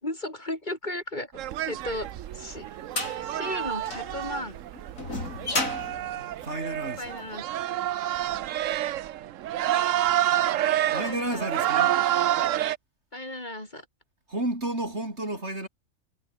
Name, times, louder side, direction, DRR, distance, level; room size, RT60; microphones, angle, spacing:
voice 1, 0.0-1.3 1.7-2.7 3.2-4.6 7.0-7.4 11.0-11.5 13.1-13.9, left 1 dB, 35° left, 5.7 m, -35 dB
sound 1, 1.4-12.8, right 12 dB, 75° right, 1.0 m, -28 dB
sound 2, 1.9-7.2, left 2 dB, 75° left, 5.1 m, -34 dB
voice 2, 6.4-7.1 10.9-12.0 14.3-15.7, right 1 dB, 55° right, 7.7 m, -31 dB
omnidirectional pair, 1.4 m